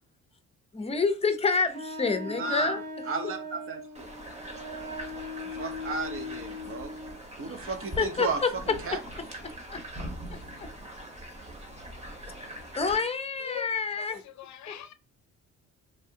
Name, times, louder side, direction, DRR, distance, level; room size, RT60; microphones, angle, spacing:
voice 1, 0.7-2.8 7.4-7.6 8.0-8.3 8.7-8.8 9.4-9.8 10.6-10.7 12.7-14.2 14.7-14.8, left 4 dB, 20° left, 0.6 m, -28 dB
Wind instrument woodwind instrument, 1.7-7.2, left 2 dB, 80° right, 1.2 m, -39 dB
voice 2, 2.3-2.8 3.1-4.1 5.5-6.9 7.4-8.4 8.7-9.0, right 4 dB, 45° right, 0.9 m, -34 dB
sound 1, 3.9-13.0, right 1 dB, 20° right, 1.1 m, -42 dB
voice 3, 10.3-10.7 13.4-14.9, left 12 dB, 70° left, 0.6 m, -43 dB
3.4 x 2.3 x 2.8 m
cardioid pair, 90°, 30 cm